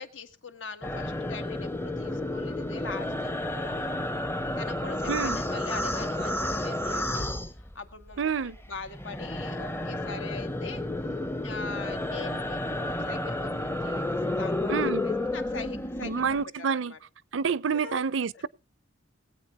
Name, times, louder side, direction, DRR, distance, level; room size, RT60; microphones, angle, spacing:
voice 1, 0.0-4.0 4.6-7.3 7.7-10.8 11.4-17.0 17.7-18.0 18.3-18.4, left 4 dB, 85° left, 1.7 m, -42 dB
sound 1, 0.8-8.2 8.4-16.4, left 1 dB, 10° left, 0.6 m, -31 dB
voice 2, 8.2-8.6 14.7-15.0 16.0-16.9 17.3-18.5, right 6 dB, 85° right, 0.5 m, -28 dB
19.5 x 8.5 x 4.2 m
head